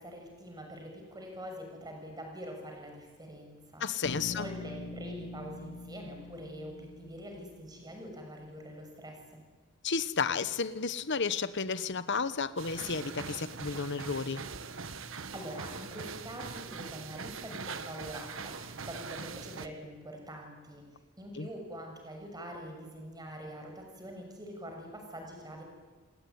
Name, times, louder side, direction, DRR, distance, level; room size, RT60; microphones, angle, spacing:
voice 1, 0.0-9.4 15.3-20.8 21.2-25.6, equal, 20° right, 2 dB, 6.8 m, -44 dB
voice 2, 3.8-4.5 9.8-14.4 21.4-21.5, left 5 dB, 60° left, 14 dB, 1.2 m, -32 dB
Bass guitar, 4.0-8.1, left 2 dB, 75° left, 1.0 m, -44 dB
sound 1, 12.6-19.7, right 5 dB, 70° right, 1.4 m, -42 dB
28.0 x 21.0 x 9.6 m, 1.4 s
head